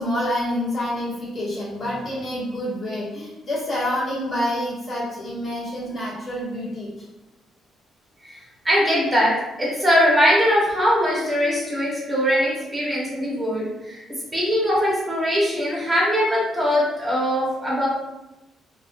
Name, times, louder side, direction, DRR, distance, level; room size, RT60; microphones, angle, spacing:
voice 1, 0.0-7.0, left 1 dB, 50° left, -8 dB, 1.4 m, -27 dB
voice 2, 8.6-9.3 9.6-14.0 14.3-17.9, equal, 15° right, -5 dB, 0.9 m, -21 dB
2.7 x 2.3 x 2.5 m, 0.98 s
cardioid pair, 90°, 0 cm